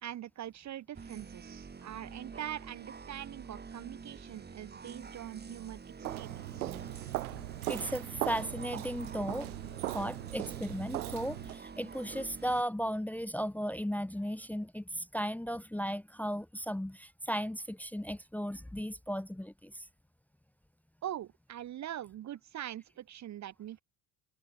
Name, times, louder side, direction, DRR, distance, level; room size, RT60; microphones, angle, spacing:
voice 1, 0.0-6.7 21.0-23.8, right 12 dB, 40° right, 0.9 m, -43 dB
sound 1, 1.0-12.6, right 5 dB, 25° right, 1.9 m, -47 dB
Walk footsteps, 6.0-11.6, right 16 dB, 85° right, 0.9 m, -39 dB
voice 2, 7.7-9.5 9.9-19.9, equal, 5° left, 0.9 m, -36 dB
hypercardioid pair, 65°, 43 cm